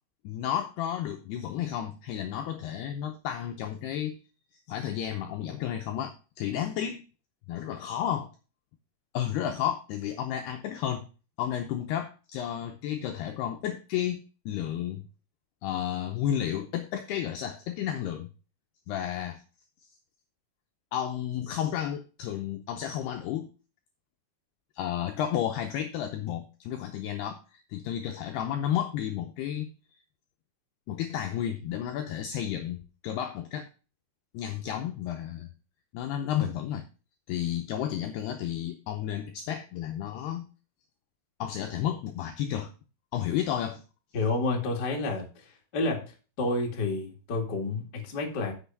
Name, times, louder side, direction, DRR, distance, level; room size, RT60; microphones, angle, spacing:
voice 1, 0.2-4.2 4.7-7.0 7.5-8.3 9.1-11.1 11.4-14.2 14.5-15.0 15.6-18.3 18.9-19.4 20.9-23.5 24.8-29.7 30.9-32.8 33.0-33.7 34.3-35.5 35.9-36.9 37.3-40.5 41.4-42.7 43.1-43.8, left 10 dB, 85° left, 5 dB, 2.2 m, -32 dB
voice 2, 44.1-46.0 46.4-48.5, left 2 dB, 70° left, 0 dB, 0.9 m, -30 dB
8.3 x 6.5 x 5.3 m, 0.35 s
omnidirectional pair, 5.6 m